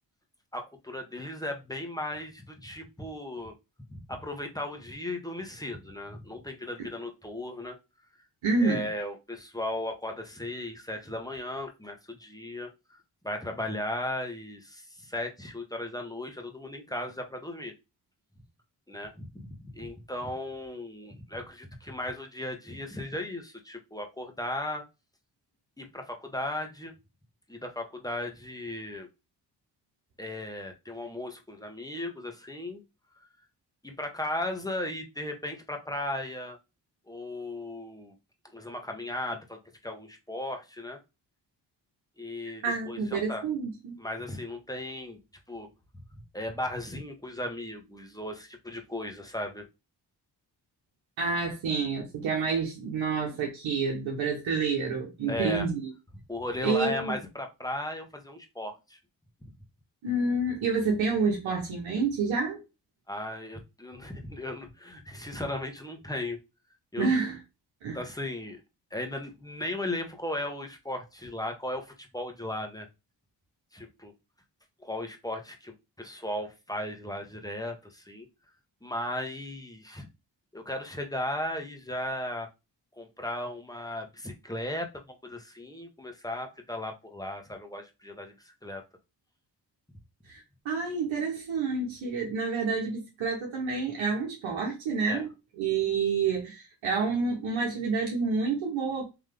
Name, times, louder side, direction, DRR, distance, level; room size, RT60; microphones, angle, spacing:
voice 1, 0.5-3.5 3.9-7.8 8.6-17.7 18.9-24.8 25.8-26.9 27.5-29.1 30.2-32.8 33.8-36.6 37.1-38.1 38.5-41.0 42.2-43.4 44.0-45.2 45.5-45.7 46.3-49.7 55.3-55.7 56.3-59.0 59.5-59.6 63.1-66.4 66.9-67.2 67.9-68.6 68.9-72.9 73.7-74.1 74.8-78.3 78.8-80.1 80.5-82.5 83.0-88.8 95.1-95.3, left 1 dB, 10° left, 1.4 m, -36 dB
voice 2, 8.4-8.8 42.6-44.0 51.2-55.9 56.6-57.1 60.0-62.6 67.0-67.4 67.8-68.0 90.3-95.3 95.6-99.0, right 4 dB, 80° right, 1.2 m, -28 dB
4.0 x 3.0 x 3.4 m
supercardioid pair, 45°, 46 cm